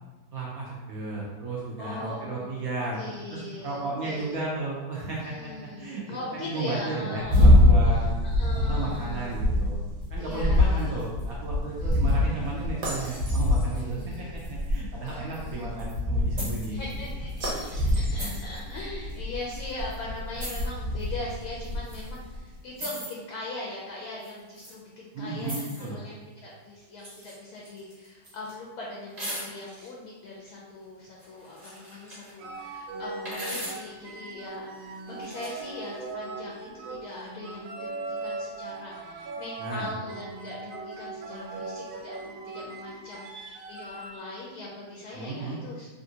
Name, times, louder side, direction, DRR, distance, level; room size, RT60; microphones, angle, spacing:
voice 1, 0.3-3.0 3.3-5.5 5.8-6.0 6.3-8.2 8.5-9.8 10.1-16.8 25.1-26.0 39.6-39.9 45.1-45.6, right 3 dB, 75° right, -5 dB, 0.8 m, -34 dB
voice 2, 1.8-2.6 2.9-4.4 5.2-7.5 8.2-9.4 10.2-11.0 11.8-12.8 13.7-14.4 15.0-15.7 16.7-45.9, left 2 dB, 75° left, -3 dB, 0.9 m, -40 dB
sound 1, 7.2-22.4, left 1 dB, 55° right, 1.1 m, -25 dB
sound 2, 16.4-16.7 17.3-17.5 18.2-18.6 19.5-19.6 20.4-20.7 21.8-22.1 22.8-23.1 24.2-24.7 25.4-25.9 27.0-27.4 27.6-28.5 29.2-29.9 31.2-32.3 33.3-33.9 35.1-35.7, equal, 25° right, 1.1 m, -38 dB
sound 3, 32.4-44.2, right 3 dB, 90° right, 1.3 m, -39 dB
3.5 x 2.5 x 2.7 m, 1.2 s
omnidirectional pair, 2.1 m